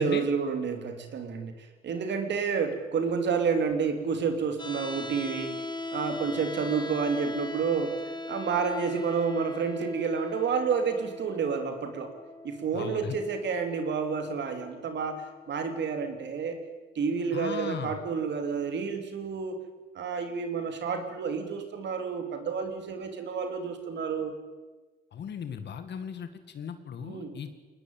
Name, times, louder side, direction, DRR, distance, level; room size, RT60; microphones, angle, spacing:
voice 1, 0.0-5.6 5.9-7.9 8.3-12.1 12.4-16.6 16.9-19.6 19.9-24.3 27.0-27.4, right 5 dB, 65° right, 6 dB, 3.3 m, -30 dB
sound 1, 4.6-16.6, left 2 dB, 20° left, 2.7 m, -41 dB
voice 2, 12.7-13.2 17.3-17.9 25.1-27.5, left 7 dB, 60° left, 9 dB, 2.1 m, -37 dB
22.5 x 19.0 x 9.1 m, 1.2 s
cardioid pair, 90°, 20 cm